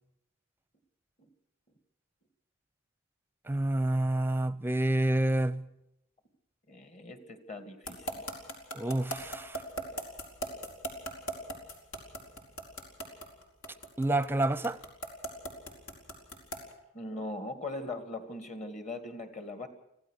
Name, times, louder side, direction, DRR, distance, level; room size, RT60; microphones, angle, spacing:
voice 1, 3.5-5.7 8.7-9.6 14.0-14.8, right 1 dB, 10° right, 0.7 m, -28 dB
voice 2, 6.7-8.2 16.9-19.7, left 2 dB, 35° left, 2.2 m, -40 dB
sound 1, 7.9-16.7, right 1 dB, 80° left, 4.6 m, -37 dB
25.5 x 16.0 x 6.5 m
head